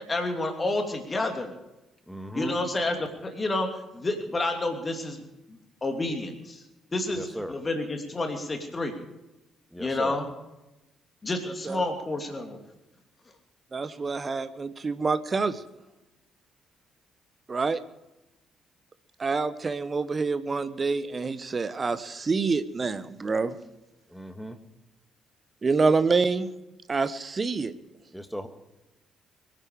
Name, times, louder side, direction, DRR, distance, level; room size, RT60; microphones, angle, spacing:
voice 1, 0.0-1.5 2.3-3.7 3.9-5.2 5.5-6.6 6.9-8.9 9.8-10.3 11.2-12.6, left 2 dB, 30° left, 4 dB, 2.9 m, -29 dB
voice 2, 2.1-2.5 7.1-7.5 9.7-10.2 24.1-24.6 28.1-28.5, equal, ahead, 8 dB, 1.9 m, -36 dB
voice 3, 13.7-15.6 17.5-17.8 19.2-23.6 25.6-26.5 26.9-27.7, right 4 dB, 35° right, 14 dB, 1.1 m, -27 dB
24.5 x 11.0 x 4.9 m, 0.96 s
figure-of-eight pair, 45°, 0 cm